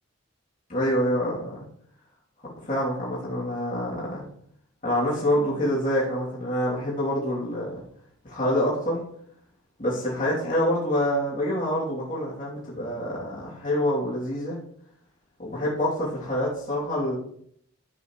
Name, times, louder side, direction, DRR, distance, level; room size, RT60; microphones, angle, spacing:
voice 1, 0.7-1.7 2.4-4.3 4.8-7.8 8.2-9.1 9.8-14.6 15.4-17.2, equal, 40° left, -7 dB, 3.0 m, -26 dB
12.5 x 8.3 x 3.2 m, 0.66 s
head